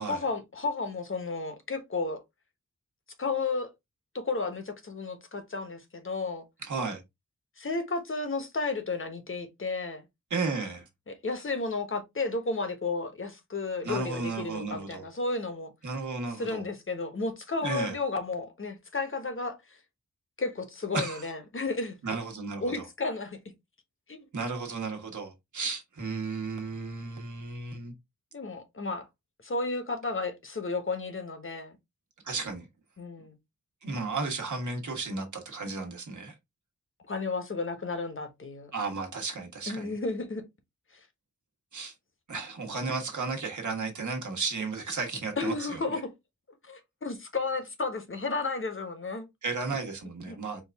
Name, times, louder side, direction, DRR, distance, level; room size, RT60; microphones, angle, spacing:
voice 1, 0.1-2.2 3.2-3.7 4.1-6.4 7.6-10.0 11.1-15.7 16.4-19.6 20.4-22.0 22.6-23.4 24.1-24.2 28.3-29.1 29.4-31.8 33.0-33.4 37.1-38.7 39.7-40.4 45.4-46.1 46.6-49.3 50.3-50.4, left 3 dB, 45° left, 1.0 m, -32 dB
voice 2, 6.6-7.0 10.3-10.8 13.8-15.0 15.8-16.6 17.6-18.0 20.9-21.3 22.0-22.9 24.3-27.9 32.2-32.7 33.8-36.3 38.7-39.9 41.7-41.9 42.3-45.8 49.4-50.6, right 4 dB, 75° right, 1.3 m, -34 dB
4.6 x 2.5 x 3.4 m
wide cardioid pair, 100°, 30 cm